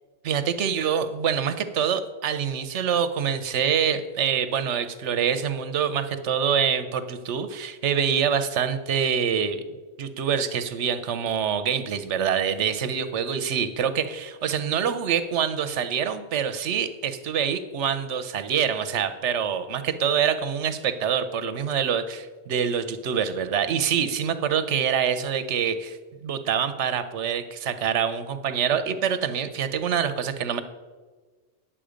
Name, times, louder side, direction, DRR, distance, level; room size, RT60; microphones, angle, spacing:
voice 1, 0.2-9.6 10.0-26.0 26.2-30.6, right 7 dB, 80° right, 11 dB, 1.0 m, -25 dB
10.0 x 7.4 x 5.0 m, 1.4 s
omnidirectional pair, 1.2 m